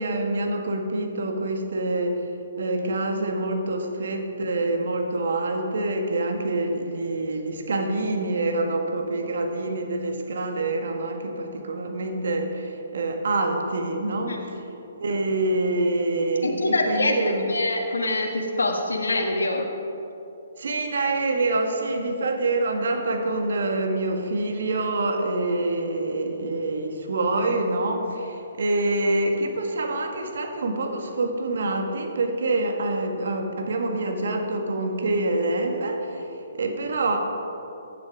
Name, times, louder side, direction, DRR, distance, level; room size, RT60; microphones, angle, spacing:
voice 1, 0.0-2.3 2.6-14.6 15.0-17.5 20.6-36.3 36.5-37.2, right 2 dB, 65° right, 3 dB, 1.8 m, -26 dB
voice 2, 16.4-17.1 17.5-19.7, left 2 dB, 85° left, 1 dB, 1.4 m, -25 dB
15.5 x 9.5 x 5.0 m, 2.9 s
hypercardioid pair, 135°, 0 cm